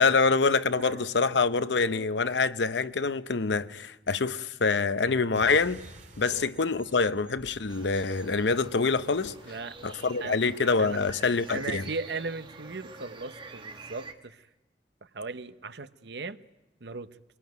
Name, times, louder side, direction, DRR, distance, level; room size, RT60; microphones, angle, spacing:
voice 1, 0.0-5.8 6.2-9.3 9.8-11.8, left 4 dB, 80° left, 0.8 m, -25 dB
voice 2, 0.8-1.4 1.9-2.1 6.3-6.5 9.4-9.8 10.2-10.4 10.8-11.0 11.5-14.4 15.1-16.4 16.8-17.1, right 3 dB, 70° right, 0.9 m, -38 dB
sound 1, 5.3-10.3, right 1 dB, 45° right, 2.6 m, -52 dB
sound 2, 7.7-14.1, right 3 dB, 30° right, 1.5 m, -47 dB
24.0 x 19.0 x 9.4 m
head